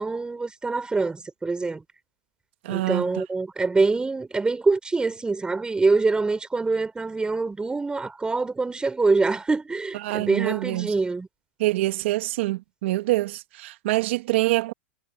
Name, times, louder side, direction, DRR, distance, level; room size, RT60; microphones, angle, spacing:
voice 1, 0.0-1.8 2.7-11.3, right 3 dB, 10° right, 5.9 m, -25 dB
voice 2, 2.6-3.1 9.9-10.9 11.6-14.7, right 18 dB, 70° right, 2.1 m, -25 dB
hypercardioid pair, 100°, 7 cm